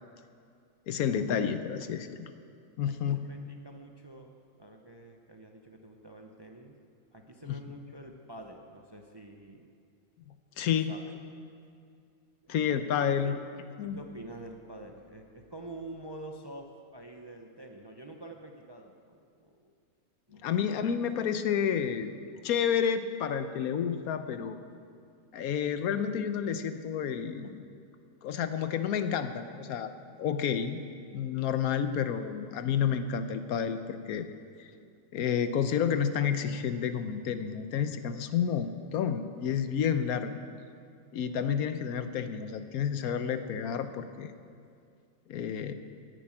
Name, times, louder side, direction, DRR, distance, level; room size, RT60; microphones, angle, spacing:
voice 1, 0.9-2.3 2.8-3.3 7.5-7.6 10.3-10.9 12.5-13.4 13.8-14.0 20.4-22.1 22.4-24.6 25.3-27.6 28.2-29.9 30.2-30.8 31.1-34.3 34.6-34.7 35.1-40.4 41.1-44.3 45.3-45.7, left 8 dB, 85° left, 10 dB, 1.2 m, -30 dB
voice 2, 2.9-6.8 7.1-9.7 10.9-11.2 12.4-12.7 13.2-13.3 13.8-19.7 20.3-20.7, right 1 dB, 25° right, 3 dB, 0.6 m, -47 dB
10.0 x 9.7 x 8.9 m, 2.3 s
omnidirectional pair, 1.5 m